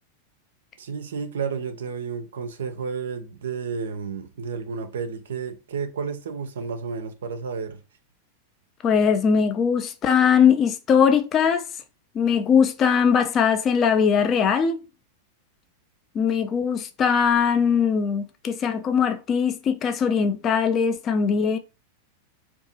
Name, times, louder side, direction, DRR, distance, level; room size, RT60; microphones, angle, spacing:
voice 1, 0.8-7.8, right 5 dB, 65° right, 0.4 m, -31 dB
voice 2, 8.8-11.6 12.1-14.8 16.1-21.6, left 7 dB, 30° left, 0.4 m, -20 dB
2.6 x 2.3 x 2.6 m
figure-of-eight pair, 90°, 0 cm